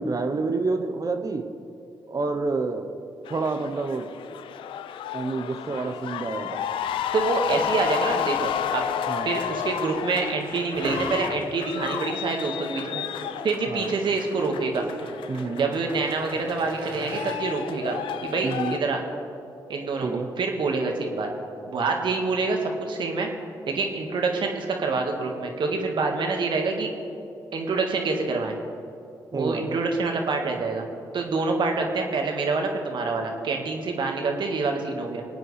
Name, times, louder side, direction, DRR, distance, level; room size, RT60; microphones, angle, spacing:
voice 1, 0.0-1.4 2.1-2.9 3.3-4.0 5.1-6.6 9.1-9.3 13.7-13.9 15.3-15.7 18.4-18.8 20.0-20.3 29.3-29.8, right 3 dB, 45° right, 6 dB, 0.9 m, -28 dB
sound 1, 3.3-18.8, left 10 dB, 80° left, 0.4 m, -32 dB
voice 2, 7.1-8.9 9.2-14.9 15.5-19.0 19.7-21.3 21.7-23.3 23.7-26.9 27.5-28.6 29.3-30.9 31.1-35.2, right 3 dB, 65° right, 2 dB, 1.7 m, -26 dB
sound 2, 10.7-17.4, right 2 dB, 85° right, 1.6 m, -40 dB
24.0 x 8.8 x 3.4 m, 2.6 s
supercardioid pair, 50°, 9 cm